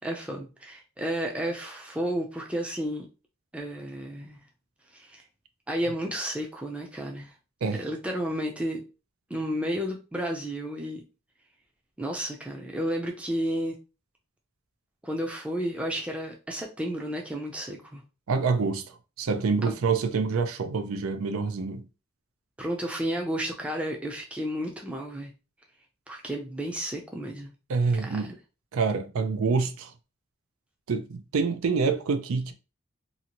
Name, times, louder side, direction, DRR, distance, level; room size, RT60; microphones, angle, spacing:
voice 1, 0.0-3.1 3.5-4.4 4.9-5.2 5.7-7.3 7.8-8.8 9.3-11.0 12.0-13.8 15.0-18.0 19.6-19.7 22.6-25.3 26.1-27.5 28.0-28.3, equal, 5° right, 0.4 m, -32 dB
voice 2, 18.3-21.9 27.7-28.3 28.7-29.9 30.9-32.5, right 4 dB, 85° right, 0.4 m, -27 dB
2.7 x 2.5 x 2.9 m
head